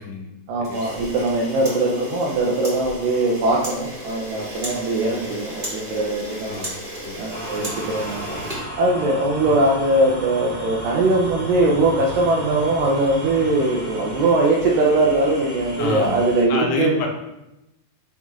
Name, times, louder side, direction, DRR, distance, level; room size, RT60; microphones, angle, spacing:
voice 1, 0.5-6.6 7.2-8.5 8.8-17.0, right 2 dB, 85° right, -2 dB, 1.9 m, -21 dB
Camera, 0.6-9.3, equal, 30° right, 0.9 m, -34 dB
sound 1, 7.3-16.4, equal, 40° left, 1.0 m, -34 dB
voice 2, 15.8-16.2 16.5-17.1, left 4 dB, 85° left, 2 dB, 2.9 m, -27 dB
9.2 x 3.2 x 3.6 m, 0.92 s
omnidirectional pair, 4.9 m